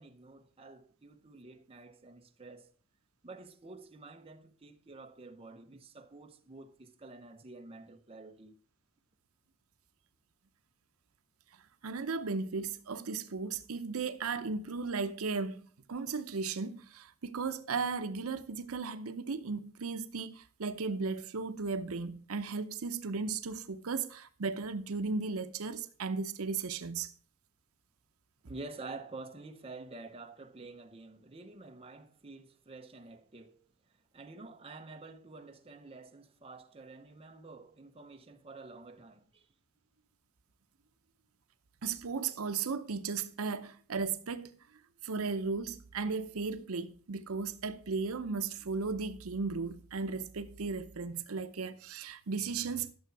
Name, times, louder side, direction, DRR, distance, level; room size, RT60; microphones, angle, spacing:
voice 1, 0.0-2.7 3.2-8.5 28.5-33.6 34.1-39.5, right 3 dB, 25° right, 0.8 m, -49 dB
voice 2, 11.8-15.6 15.9-27.1 41.8-44.5 45.0-52.9, right 4 dB, 80° right, 0.7 m, -36 dB
12.0 x 6.9 x 4.6 m
head